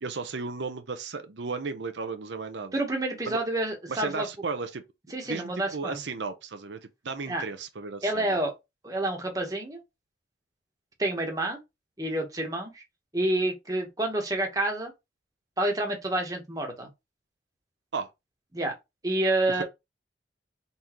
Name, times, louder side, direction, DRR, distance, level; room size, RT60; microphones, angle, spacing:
voice 1, 0.0-2.8 3.3-3.4 3.9-4.8 5.2-6.8 7.0-8.4 17.9-18.1 19.6-19.7, right 4 dB, 85° right, 0.7 m, -34 dB
voice 2, 2.7-4.3 5.1-6.0 7.3-7.4 8.0-8.5 8.8-9.8 11.0-11.6 12.0-12.8 13.1-14.9 15.6-16.9 18.5-18.7 19.0-19.6, right 1 dB, 20° right, 1.1 m, -28 dB
4.1 x 3.6 x 3.0 m
head